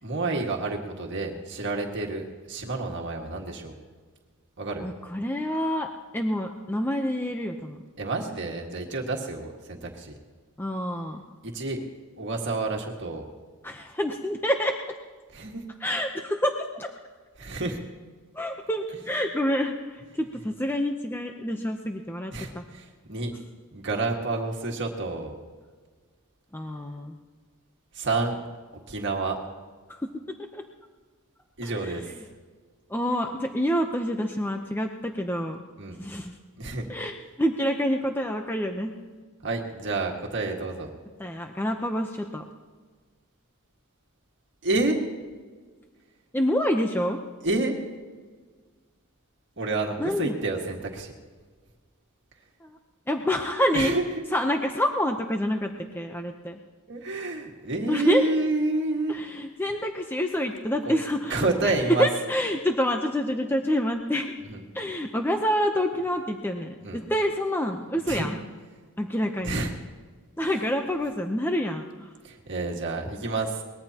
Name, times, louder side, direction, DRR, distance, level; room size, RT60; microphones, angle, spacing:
voice 1, 0.0-3.7 4.6-4.9 8.0-10.1 11.4-11.8 12.2-13.3 15.3-15.6 17.4-17.8 22.3-23.3 23.7-25.4 27.9-28.4 28.9-29.4 31.6-32.2 35.8-36.0 36.6-36.9 39.4-40.9 44.6-45.0 47.4-47.7 49.6-51.2 53.7-54.0 56.9-59.1 61.3-62.1 64.5-64.6 66.8-67.0 68.1-68.3 69.4-69.7 70.4-70.7 72.2-73.6, right 2 dB, 55° right, 0 dB, 1.8 m, -29 dB
voice 2, 4.8-7.8 10.6-11.2 13.6-14.7 15.8-16.9 18.3-22.6 26.5-27.2 29.9-30.1 30.4-30.6 31.6-32.2 32.9-35.6 36.0-36.4 36.9-38.9 41.2-42.4 46.3-47.2 50.0-50.4 52.6-52.8 53.1-54.0 54.3-56.6 57.9-58.2 59.1-64.4 64.7-68.5 69.0-69.7 70.4-72.1, equal, 10° left, 3 dB, 0.7 m, -27 dB
23.0 x 20.0 x 2.9 m, 1.5 s
head